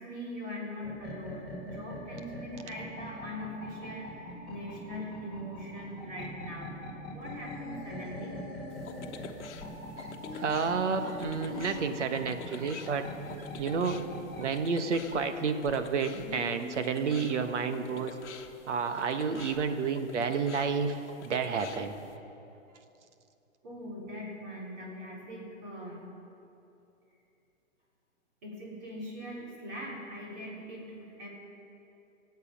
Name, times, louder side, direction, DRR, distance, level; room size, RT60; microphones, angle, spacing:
voice 1, 0.0-8.3 23.6-26.1 28.4-31.3, equal, 30° right, -5 dB, 3.9 m, -41 dB
sound 1, 0.8-14.5, equal, ahead, 1.8 m, -44 dB
sound 2, 7.2-9.2 10.2-12.1 15.9-18.2, left 3 dB, 20° left, 1.4 m, -45 dB
sound 3, 8.7-22.2, left 6 dB, 60° left, 1.1 m, -48 dB
voice 2, 10.3-13.1 13.4-14.0 14.4-18.1 18.7-21.9, right 5 dB, 65° right, 8 dB, 1.2 m, -30 dB
22.5 x 8.2 x 5.2 m, 2.8 s
hypercardioid pair, 175°, 39 cm